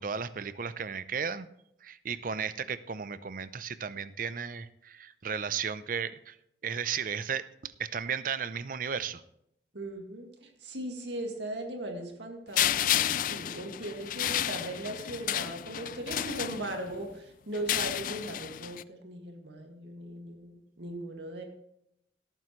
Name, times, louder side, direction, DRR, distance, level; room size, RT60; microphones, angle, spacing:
voice 1, 0.0-1.5 1.8-6.4 6.6-9.2, right 6 dB, 50° right, 14 dB, 0.6 m, -34 dB
voice 2, 9.7-21.4, right 1 dB, 75° right, 3 dB, 2.1 m, -39 dB
sound 1, 12.5-17.0 17.5-18.8, left 11 dB, 50° left, 0.3 m, -31 dB
17.5 x 9.1 x 3.2 m, 0.77 s
head